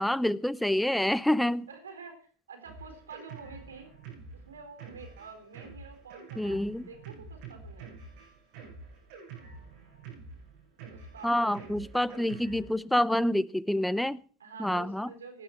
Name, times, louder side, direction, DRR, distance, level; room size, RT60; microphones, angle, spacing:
voice 1, 0.0-1.7 6.4-6.8 11.2-14.2 14.6-15.1, left 1 dB, 5° left, 0.6 m, -27 dB
voice 2, 1.7-3.9 4.3-7.9 10.9-11.7 14.4-15.4, right 5 dB, 90° right, 3.8 m, -48 dB
Drum kit, 2.7-12.7, right 4 dB, 65° right, 7.1 m, -47 dB
18.0 x 10.5 x 4.4 m
hypercardioid pair, 90°, 0 cm